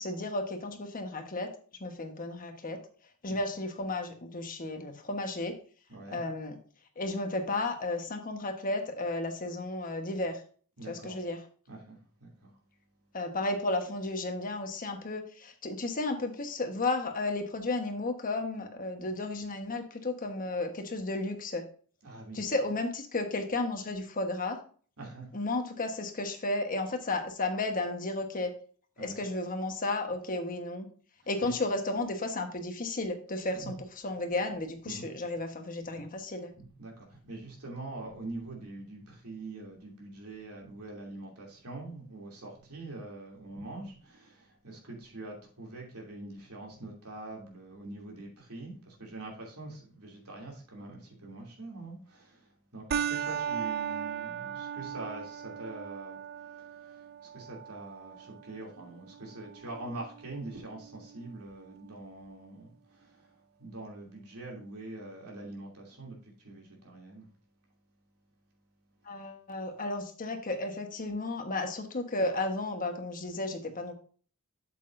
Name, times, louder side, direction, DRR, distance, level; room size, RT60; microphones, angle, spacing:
voice 1, 0.0-1.5 1.8-2.8 3.2-5.5 6.1-6.5 7.0-10.4 10.9-11.4 13.1-21.6 22.3-24.6 25.3-28.5 29.0-30.9 31.3-33.7 34.0-36.5 69.1-73.9, left 2 dB, 40° left, 1.2 m, -33 dB
voice 2, 5.9-6.2 10.8-11.2 11.7-12.5 22.0-22.5 25.0-25.3 29.0-29.2 31.2-31.5 33.5-33.7 34.8-35.1 35.9-36.0 36.6-67.3, right 2 dB, 75° right, 2.8 m, -44 dB
sound 1, 52.9-61.9, right 8 dB, 45° right, 0.4 m, -38 dB
8.2 x 7.7 x 2.6 m
head